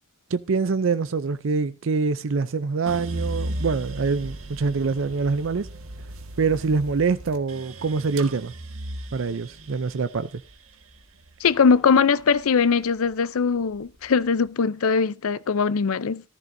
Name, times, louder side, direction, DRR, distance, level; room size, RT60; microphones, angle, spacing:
voice 1, 0.3-5.7 6.4-8.5 9.1-10.3, right 4 dB, 65° right, 0.5 m, -25 dB
sound 1, 2.9-13.1 13.5-14.3, right 1 dB, 85° right, 1.7 m, -36 dB
voice 2, 11.4-16.2, left 5 dB, 85° left, 0.5 m, -21 dB
14.5 x 13.0 x 2.7 m
head